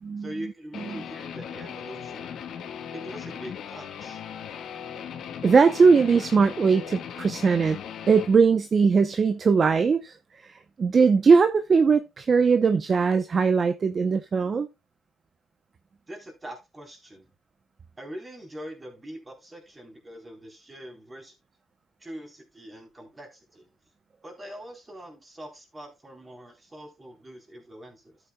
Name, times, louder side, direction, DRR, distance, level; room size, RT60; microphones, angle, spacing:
voice 1, 0.2-2.3 2.9-4.2 16.1-17.3 18.0-21.3 22.0-23.7 24.2-28.2, equal, 20° right, 3.8 m, -42 dB
Guitar, 0.7-8.3, left 8 dB, 70° left, 1.5 m, -38 dB
voice 2, 5.4-7.8 8.1-14.7, right 5 dB, 40° right, 0.8 m, -20 dB
12.0 x 8.4 x 2.3 m
cardioid pair, 90°, 0 cm